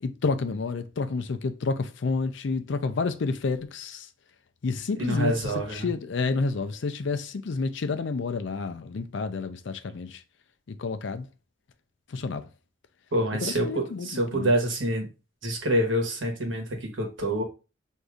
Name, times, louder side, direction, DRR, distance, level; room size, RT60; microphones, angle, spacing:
voice 1, 0.0-4.1 4.6-10.2 10.7-11.3 12.1-12.4 13.4-14.5, left 4 dB, 65° left, 0.4 m, -30 dB
voice 2, 5.0-5.9 13.1-15.1 15.4-17.4, right 1 dB, 75° right, 1.1 m, -26 dB
6.3 x 2.7 x 2.4 m
head